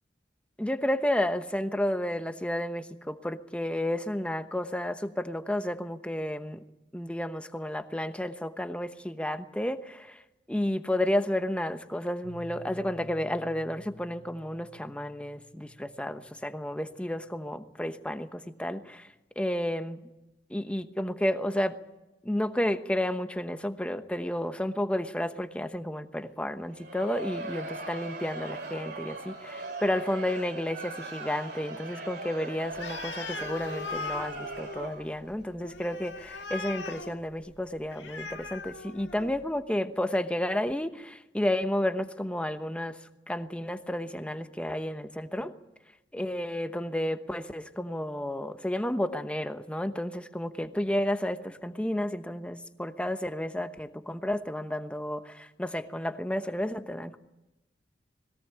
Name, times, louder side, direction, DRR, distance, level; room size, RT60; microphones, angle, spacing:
voice 1, 0.6-6.6 6.9-10.2 10.5-19.1 19.4-20.0 20.5-21.8 22.2-43.0 43.3-45.5 46.1-57.2, left 1 dB, 5° left, 9 dB, 1.0 m, -31 dB
Piano, 12.2-17.9, left 2 dB, 60° left, 1.1 m, -52 dB
Crowd, 26.7-35.2, right 2 dB, 65° right, 3.0 m, -40 dB
Animal, 32.7-39.5, left 4 dB, 85° left, 1.8 m, -40 dB
21.0 x 18.0 x 9.0 m, 0.99 s
head